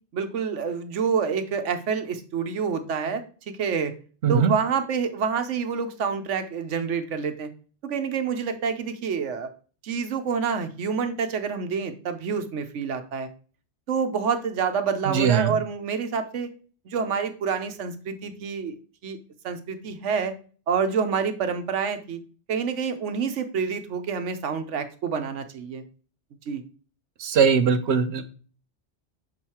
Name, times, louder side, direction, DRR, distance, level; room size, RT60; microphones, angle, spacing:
voice 1, 0.1-3.9 4.3-7.5 7.8-9.5 9.8-13.3 13.9-16.5 16.8-18.7 19.0-19.2 19.4-20.3 20.7-22.2 22.5-25.8 26.5-26.6, right 6 dB, 90° right, 8 dB, 1.2 m, -27 dB
voice 2, 4.2-4.5 15.1-15.5 27.2-28.2, right 6 dB, 70° right, 10 dB, 1.0 m, -20 dB
6.4 x 4.5 x 4.3 m, 0.40 s
omnidirectional pair, 1.2 m